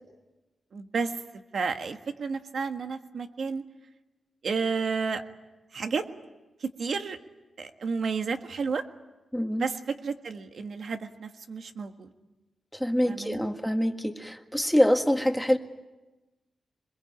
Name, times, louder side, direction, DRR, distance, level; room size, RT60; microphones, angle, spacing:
voice 1, 0.7-1.1 1.5-3.6 4.4-5.2 5.7-6.0 6.6-7.2 7.6-8.8 9.6-9.8 10.0-12.1 13.1-13.5, right 5 dB, 65° right, 6 dB, 1.6 m, -31 dB
voice 2, 9.3-9.7 12.7-15.6, equal, ahead, 5 dB, 1.8 m, -25 dB
25.5 x 22.0 x 8.7 m, 1.1 s
wide cardioid pair, 105°, 0 cm